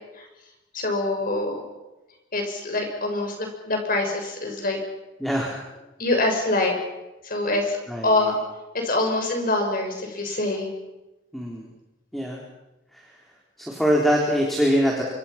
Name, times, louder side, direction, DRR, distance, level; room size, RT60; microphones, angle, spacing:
voice 1, 0.7-1.6 2.3-4.8 6.0-6.7 7.2-7.8 8.0-8.4 8.7-10.7, left 2 dB, 45° left, 3 dB, 6.2 m, -25 dB
voice 2, 5.2-5.6 7.9-8.3 11.3-11.7 12.1-12.4 12.9-13.0 13.6-15.0, equal, ahead, -2 dB, 3.8 m, -23 dB
27.0 x 25.5 x 6.0 m, 1.0 s
head